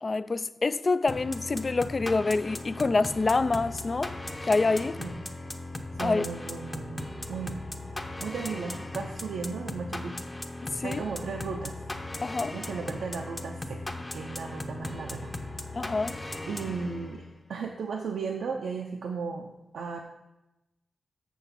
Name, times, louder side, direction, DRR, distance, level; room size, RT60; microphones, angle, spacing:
voice 1, 0.0-4.2 4.4-5.0 6.0-6.3 10.7-11.0 12.2-12.6 15.7-16.2, left 3 dB, 40° left, 0.3 m, -26 dB
sound 1, 1.1-17.4, left 2 dB, 20° left, 0.8 m, -38 dB
voice 2, 5.9-7.6 8.2-10.2 10.8-11.8 12.5-13.8 14.1-16.0 16.5-20.0, right 5 dB, 90° right, 0.7 m, -36 dB
6.8 x 6.2 x 7.0 m
wide cardioid pair, 90°, 0 cm